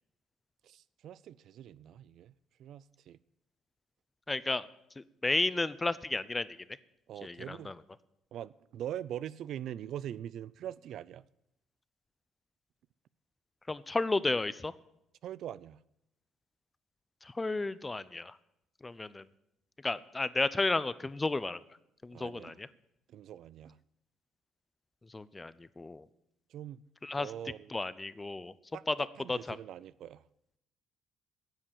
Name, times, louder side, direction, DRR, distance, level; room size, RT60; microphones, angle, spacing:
voice 1, 0.6-2.3 2.6-3.2 7.1-7.7 8.3-11.2 15.2-15.8 22.1-22.6 23.1-23.8 26.5-26.8 27.2-27.8 28.7-30.2, right 11 dB, 65° right, 0.4 m, -43 dB
voice 2, 4.3-4.7 5.0-6.5 7.2-7.8 13.7-14.7 17.2-18.3 18.8-19.2 19.8-21.6 22.0-22.7 25.1-26.0 27.0-27.3 27.7-28.5 28.9-29.0 29.3-29.6, left 3 dB, 20° left, 0.6 m, -33 dB
10.0 x 7.5 x 9.0 m
supercardioid pair, 70°, 0 cm